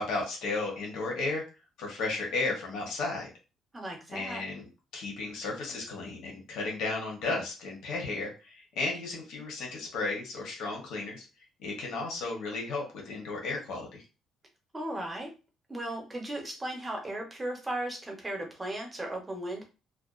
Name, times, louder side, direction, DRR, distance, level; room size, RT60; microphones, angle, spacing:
voice 1, 0.0-1.4 1.8-3.3 4.1-11.2 11.6-14.0, left 3 dB, 80° left, -1 dB, 0.8 m, -34 dB
voice 2, 3.7-4.4 14.7-15.3 15.7-19.6, right 1 dB, 15° right, 2 dB, 0.6 m, -36 dB
2.4 x 2.2 x 2.3 m, 0.31 s
cardioid pair, 160°, 0 cm